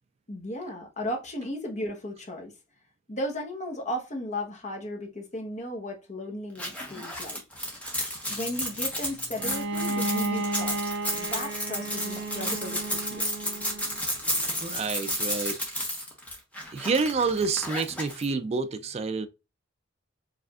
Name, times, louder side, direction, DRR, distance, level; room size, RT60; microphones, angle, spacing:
voice 1, 0.3-2.5 3.1-7.4 8.3-10.9 11.1-13.3, left 1 dB, 40° left, 1.0 m, -35 dB
sound 1, 6.6-18.3, equal, 10° left, 1.1 m, -32 dB
sound 2, 8.2-14.6, right 2 dB, 55° right, 1.5 m, -54 dB
Bowed string instrument, 9.4-14.1, right 2 dB, 90° right, 1.3 m, -33 dB
voice 2, 14.6-15.6 16.7-19.3, right 4 dB, 35° right, 0.3 m, -28 dB
4.8 x 3.3 x 2.4 m
head